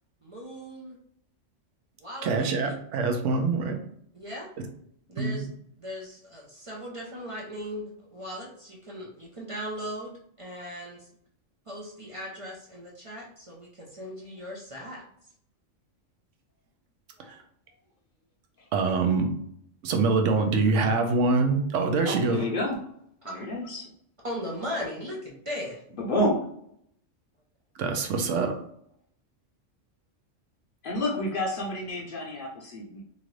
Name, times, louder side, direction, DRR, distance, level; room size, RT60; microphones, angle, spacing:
voice 1, 0.2-1.0 2.0-2.8 4.1-4.5 5.1-5.5 5.8-11.1 11.7-15.0 17.2-17.3 23.3-23.4 24.2-25.8, equal, 40° right, -3 dB, 0.4 m, -38 dB
voice 2, 2.2-3.8 5.2-5.5 17.3-17.4 18.7-19.3 19.8-22.5 27.8-28.5, right 4 dB, 75° right, 5 dB, 0.9 m, -24 dB
voice 3, 22.0-22.8 23.3-23.8 26.0-26.4 30.8-33.0, left 1 dB, 50° left, -2 dB, 0.7 m, -29 dB
2.9 x 2.5 x 3.0 m, 0.69 s
omnidirectional pair, 1.3 m